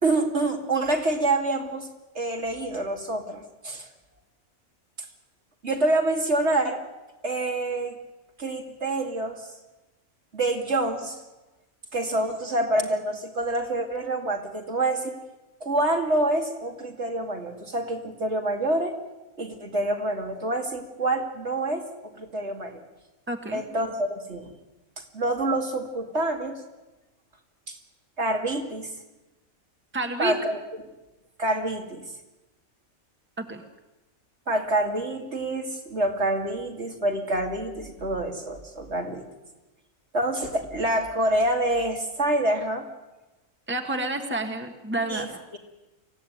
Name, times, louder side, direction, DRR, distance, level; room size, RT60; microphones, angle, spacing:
voice 1, 0.0-1.9 2.1-3.9 5.6-6.8 7.2-8.0 8.4-9.5 10.3-11.2 11.9-15.2 15.6-18.9 19.4-21.9 22.2-22.8 23.5-24.5 25.1-26.6 27.7-27.8 28.2-28.9 30.2-30.6 31.4-32.0 34.5-39.3 40.1-42.9 45.1-45.6, right 1 dB, 55° right, 3 dB, 2.8 m, -27 dB
voice 2, 23.3-23.6 29.9-30.4 33.4-33.6 43.7-45.4, right 2 dB, 10° right, 4 dB, 1.7 m, -29 dB
24.5 x 16.0 x 9.5 m, 1.1 s
omnidirectional pair, 1.4 m